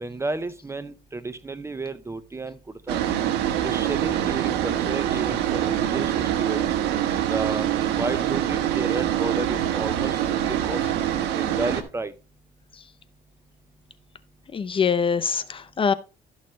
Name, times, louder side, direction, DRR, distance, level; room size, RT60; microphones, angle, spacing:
voice 1, 0.0-2.6 2.9-3.0 3.6-6.6 7.3-7.7 8.0-10.8 11.3-12.1, right 3 dB, 15° right, 0.6 m, -32 dB
sound 1, 2.9-11.8, right 11 dB, 90° right, 1.3 m, -25 dB
voice 2, 14.5-15.9, left 6 dB, 30° left, 0.7 m, -23 dB
12.5 x 6.5 x 3.1 m
cardioid pair, 110°, 17 cm